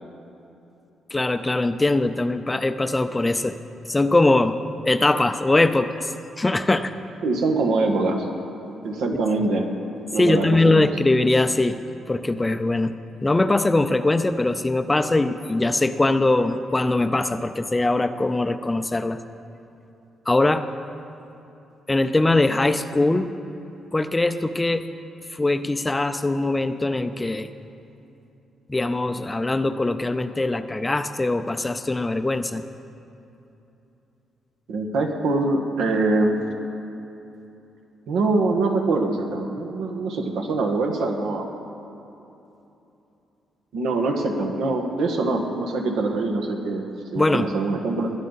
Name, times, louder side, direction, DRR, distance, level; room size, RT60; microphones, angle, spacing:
voice 1, 1.1-3.6 3.9-4.6 4.9-6.9 10.2-11.8 12.1-12.9 13.2-19.2 20.3-20.7 21.9-23.3 23.9-24.8 25.3-27.5 28.7-32.6 47.2-47.5, left 2 dB, 15° left, 10 dB, 0.4 m, -21 dB
voice 2, 7.2-8.3 8.8-9.7 10.1-10.9 34.7-36.4 38.1-41.5 43.7-46.8 47.1-48.1, right 3 dB, 85° right, 3 dB, 1.5 m, -23 dB
21.0 x 10.5 x 4.1 m, 2.9 s
cardioid pair, 130°, 0 cm